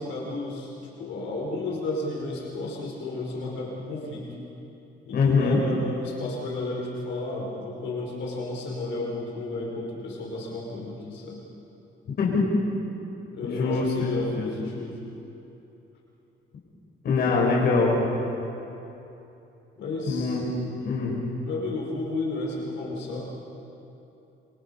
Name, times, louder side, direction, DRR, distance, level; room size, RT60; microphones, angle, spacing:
voice 1, 0.0-4.3 5.1-11.4 13.3-15.0 19.8-20.4 21.4-23.3, left 2 dB, 70° left, -3 dB, 4.7 m, -32 dB
voice 2, 5.1-5.6 12.2-12.4 13.4-13.9 14.1-14.5 17.0-18.0 20.1-20.5 20.8-21.2, left 4 dB, 55° left, -4 dB, 5.0 m, -23 dB
27.0 x 24.0 x 5.6 m, 3.0 s
cardioid pair, 160°, 20 cm